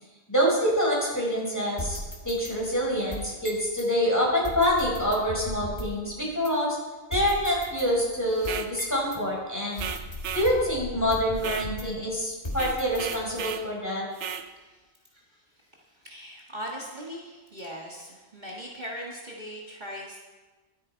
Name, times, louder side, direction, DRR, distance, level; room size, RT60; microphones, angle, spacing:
voice 1, 0.3-2.0 2.2-6.8 7.1-9.8 10.3-14.0, equal, 15° left, -4 dB, 4.6 m, -26 dB
sound 1, 1.8-3.9 4.4-6.1 6.4-6.5 7.1-9.2 9.8-12.1 12.4-13.5, left 1 dB, 35° left, 2.1 m, -38 dB
sound 2, 8.4-8.7 9.8-10.5 11.4-11.7 12.5-13.7 14.2-14.5, right 8 dB, 85° right, 1.1 m, -35 dB
voice 2, 14.5-14.8 15.1-20.2, equal, 40° right, -3 dB, 1.7 m, -40 dB
23.5 x 8.4 x 4.4 m, 1.3 s
omnidirectional pair, 1.2 m